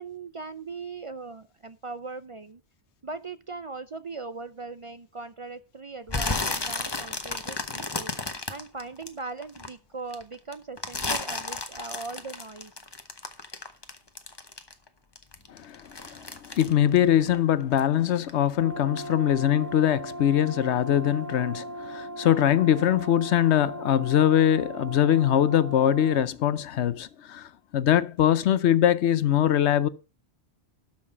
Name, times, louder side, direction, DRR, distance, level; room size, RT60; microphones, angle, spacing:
voice 1, 0.0-2.6 3.0-8.1 8.5-12.7, right 3 dB, 40° right, 0.5 m, -39 dB
sound 1, 6.1-9.7 10.1-14.9 15.2-17.9 18.2-18.5 19.0-19.1, left 3 dB, 25° left, 1.0 m, -32 dB
voice 2, 15.5-29.9, left 10 dB, 90° left, 1.0 m, -22 dB
Brass instrument, 18.6-26.3, right 2 dB, 45° left, 1.4 m, -38 dB
12.0 x 6.0 x 5.5 m
omnidirectional pair, 1.1 m